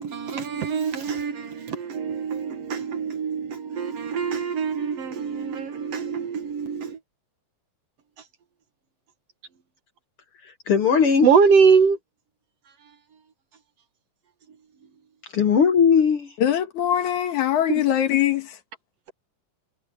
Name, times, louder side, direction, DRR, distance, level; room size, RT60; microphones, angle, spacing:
voice 1, 0.0-7.0 11.2-12.0, right 6 dB, 60° right, 2.1 m, -23 dB
voice 2, 10.4-11.3 15.3-16.3, left 6 dB, 55° left, 1.8 m, -19 dB
voice 3, 16.4-18.5, left 11 dB, 70° left, 2.8 m, -22 dB
omnidirectional pair, 3.6 m